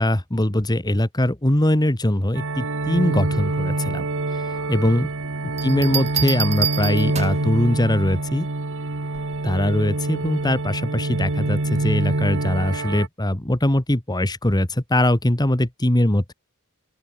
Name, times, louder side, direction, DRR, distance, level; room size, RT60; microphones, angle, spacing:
voice 1, 0.0-4.1 4.3-5.1 5.6-8.5 9.4-16.3, left 1 dB, 20° left, 1.6 m, -21 dB
sound 1, 2.3-13.1, right 2 dB, 65° right, 1.6 m, -26 dB
sound 2, 5.6-7.5 9.1-9.5, right 8 dB, 30° right, 1.5 m, -27 dB
open air
head